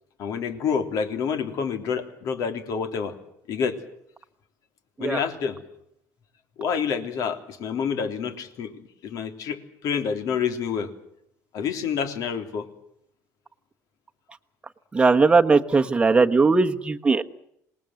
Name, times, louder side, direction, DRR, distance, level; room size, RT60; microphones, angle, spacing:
voice 1, 0.2-3.2 3.5-3.8 5.0-5.6 6.6-8.7 9.0-10.9 11.5-12.7, left 6 dB, 60° left, 7 dB, 3.4 m, -28 dB
voice 2, 14.9-17.2, right 4 dB, 15° right, 5 dB, 1.3 m, -19 dB
27.0 x 20.0 x 7.8 m, 0.76 s
cardioid pair, 155°, 7 cm